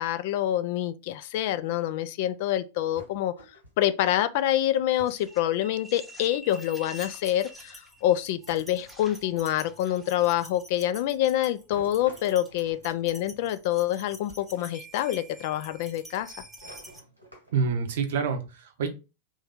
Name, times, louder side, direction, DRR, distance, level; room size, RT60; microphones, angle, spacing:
voice 1, 0.0-3.3 3.8-16.3, left 12 dB, 50° left, 0.3 m, -26 dB
sound 1, 2.9-3.9 5.0-5.3 5.6-6.2 7.3-7.4 8.5-9.8 11.7-13.6 14.3-14.7 15.1-15.2 16.3-17.8, right 1 dB, 90° right, 1.4 m, -50 dB
sound 2, 5.1-17.0, equal, 10° right, 0.7 m, -47 dB
voice 2, 17.5-18.9, right 5 dB, 60° right, 0.7 m, -27 dB
3.2 x 2.7 x 3.5 m
figure-of-eight pair, 90°, 0 cm